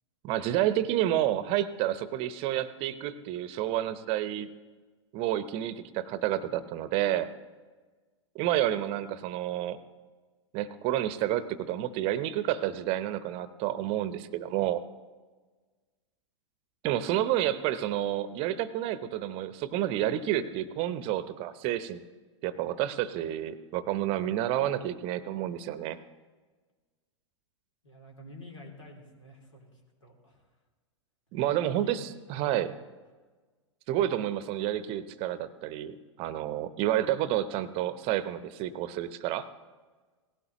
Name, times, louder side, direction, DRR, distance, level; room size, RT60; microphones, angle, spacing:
voice 1, 0.2-4.5 5.1-7.3 8.3-9.8 10.5-14.8 16.8-22.0 22.4-26.0 31.3-32.7 33.9-39.4, right 12 dB, 40° right, 14 dB, 0.8 m, -30 dB
voice 2, 27.8-30.5 31.4-32.0 32.3-32.7, left 1 dB, 80° left, 0 dB, 3.1 m, -50 dB
18.0 x 16.0 x 3.0 m, 1.3 s
figure-of-eight pair, 95°, 16 cm